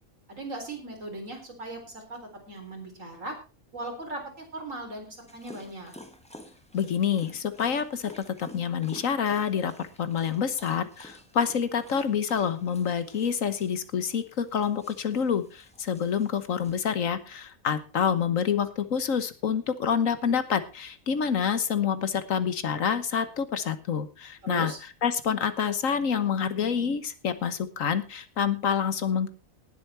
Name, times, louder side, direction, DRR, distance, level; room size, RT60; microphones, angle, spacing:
voice 1, 0.3-3.4 3.7-5.9 24.4-24.8, right 2 dB, 65° right, 2 dB, 4.6 m, -38 dB
Dog, 5.3-16.8, equal, 5° left, 1.6 m, -51 dB
voice 2, 6.7-24.7 25.0-29.3, left 7 dB, 70° left, 12 dB, 1.5 m, -27 dB
18.5 x 8.2 x 4.4 m, 0.31 s
omnidirectional pair, 1.5 m